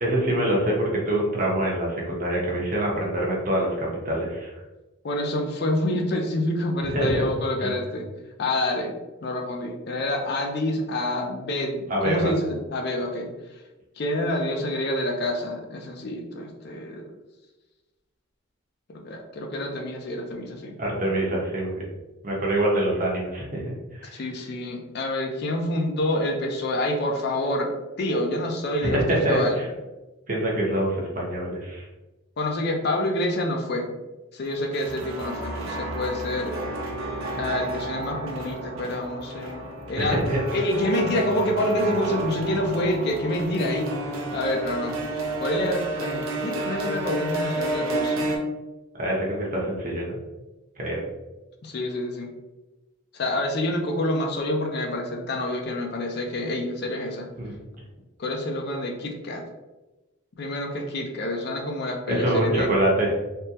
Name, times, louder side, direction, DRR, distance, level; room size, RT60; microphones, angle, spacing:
voice 1, 0.0-4.5 6.9-7.2 7.6-7.7 11.9-12.3 20.8-21.9 22.2-24.2 28.8-29.7 30.3-31.8 40.0-40.4 48.9-50.1 50.8-51.0 57.4-57.5 62.1-63.1, right 1 dB, 40° right, -3 dB, 0.7 m, -25 dB
voice 2, 5.0-8.1 8.4-9.0 9.2-13.6 14.0-17.0 18.9-20.8 24.0-27.7 28.0-29.6 32.4-34.0 34.3-36.5 37.4-40.2 40.5-44.9 45.4-48.4 51.6-52.3 53.1-57.3 58.2-59.4 60.4-62.7, left 1 dB, 50° left, 2 dB, 0.4 m, -27 dB
sound 1, 34.5-48.4, right 2 dB, 75° right, 0.6 m, -31 dB
3.5 x 2.1 x 2.8 m, 1.1 s
head